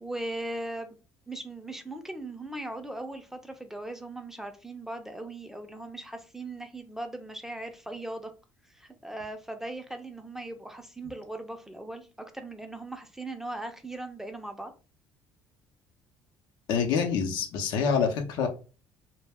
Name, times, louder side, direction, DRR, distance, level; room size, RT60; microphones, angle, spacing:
voice 1, 0.0-0.9 1.3-8.3 8.7-14.7, right 2 dB, 5° right, 6 dB, 0.5 m, -39 dB
voice 2, 16.7-18.5, left 6 dB, 75° left, 4 dB, 0.6 m, -26 dB
2.1 x 2.1 x 3.4 m, 0.34 s
supercardioid pair, 80°, 8 cm